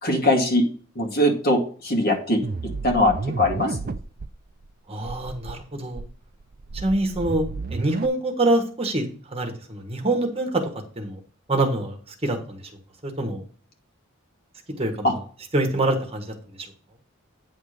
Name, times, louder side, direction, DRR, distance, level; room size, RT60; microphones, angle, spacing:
voice 1, 0.0-0.7 1.0-2.4 2.8-3.8 15.0-15.1, left 1 dB, 50° left, 2 dB, 2.2 m, -21 dB
sound 1, 2.4-4.3 4.6-4.7 5.0-5.5 5.9-8.1, right 3 dB, 45° right, 0.5 m, -31 dB
voice 2, 4.9-6.0 6.7-7.4 7.7-10.6 11.0-11.2 11.5-12.0 12.2-12.6 13.0-13.4 14.8-15.2 15.5-16.2, right 2 dB, 30° right, 3 dB, 1.5 m, -25 dB
9.5 x 3.7 x 6.6 m, 0.41 s
head